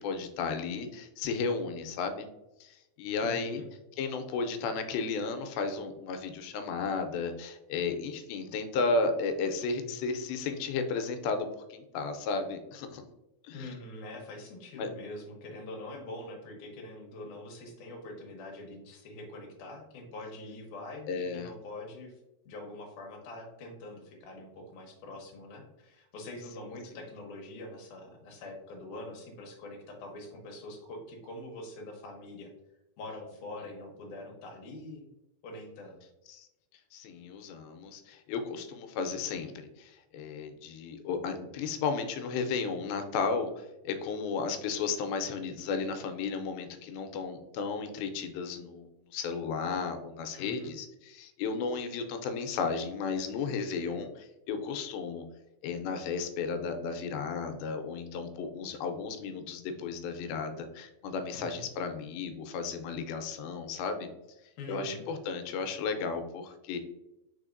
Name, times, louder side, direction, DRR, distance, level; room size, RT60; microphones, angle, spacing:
voice 1, 0.0-2.3 2.6-3.6 4.0-13.0 13.4-13.7 14.8-14.9 21.1-21.5 36.3-36.5 36.9-39.5 39.8-55.2 55.6-64.1 64.7-66.8, left 4 dB, 90° left, 7 dB, 2.4 m, -34 dB
voice 2, 3.2-3.7 13.5-22.1 22.5-32.5 33.0-35.1 35.4-36.0 50.4-50.7 61.3-61.7 64.6-65.0, left 2 dB, 75° left, 2 dB, 2.0 m, -44 dB
5.0 x 4.0 x 2.5 m, 0.94 s
omnidirectional pair, 4.2 m